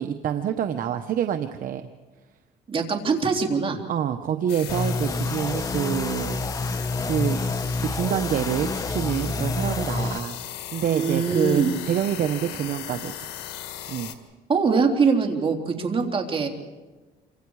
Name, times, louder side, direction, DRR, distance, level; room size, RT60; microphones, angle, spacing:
voice 1, 0.0-1.8 3.9-6.4 7.0-10.4 10.7-13.3 13.9-14.1, right 9 dB, 55° right, 8 dB, 1.0 m, -27 dB
voice 2, 2.7-3.8 10.9-11.7 14.5-16.5, right 5 dB, 30° right, 2 dB, 3.2 m, -23 dB
sound 1, 4.5-14.2, left 11 dB, 85° left, 1.8 m, -37 dB
sound 2, 4.7-10.2, left 3 dB, 20° left, 1.0 m, -28 dB
28.5 x 25.0 x 4.8 m, 1.2 s
cardioid pair, 110°, 17 cm